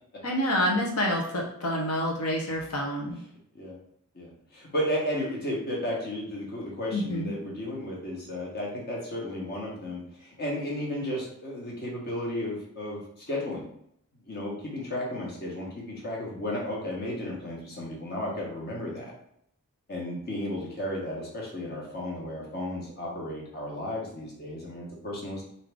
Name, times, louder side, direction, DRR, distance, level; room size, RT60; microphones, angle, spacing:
voice 1, 0.2-3.2 6.9-7.3, equal, 80° left, 0 dB, 1.0 m, -27 dB
voice 2, 4.1-13.0 13.3-13.6 14.2-19.1 19.9-25.4, left 1 dB, 45° left, -2 dB, 1.1 m, -33 dB
3.6 x 2.7 x 3.4 m, 0.71 s
head